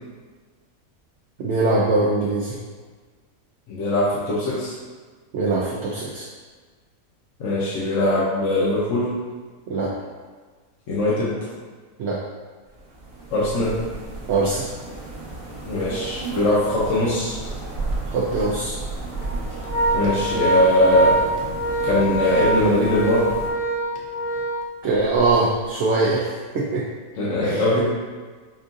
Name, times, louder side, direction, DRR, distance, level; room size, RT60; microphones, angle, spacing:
voice 1, 1.4-2.6 5.3-6.2 9.7-9.9 12.0-12.2 14.3-14.6 18.1-18.7 24.8-26.8 27.4-27.6, right 3 dB, 60° right, -5 dB, 0.8 m, -22 dB
voice 2, 3.7-4.7 7.4-9.1 10.9-11.4 13.3-13.8 15.6-17.4 19.9-21.2 21.8-23.3 27.2-27.8, left 1 dB, 60° left, -8 dB, 1.1 m, -21 dB
sound 1, 12.7-23.5, right 2 dB, 35° right, 1.0 m, -33 dB
Organ, 17.5-17.7 18.1-18.2 19.0-25.3, right 1 dB, 80° left, 1.1 m, -25 dB
5.3 x 2.4 x 2.6 m, 1.4 s
omnidirectional pair, 1.5 m